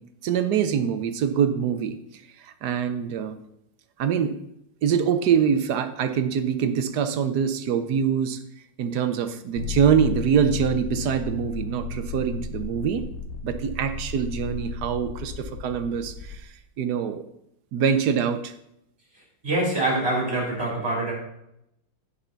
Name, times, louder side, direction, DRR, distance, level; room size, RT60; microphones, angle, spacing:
voice 1, 0.2-2.0 2.4-3.4 4.0-4.3 4.8-8.4 8.8-13.1 13.4-16.4 16.8-17.2 17.7-18.5, right 7 dB, 65° right, 10 dB, 1.2 m, -24 dB
sound 1, 9.6-16.4, left 6 dB, 70° left, 1.4 m, -34 dB
voice 2, 19.4-21.1, right 2 dB, 30° right, -3 dB, 3.8 m, -25 dB
16.0 x 5.6 x 3.9 m, 0.80 s
omnidirectional pair, 2.0 m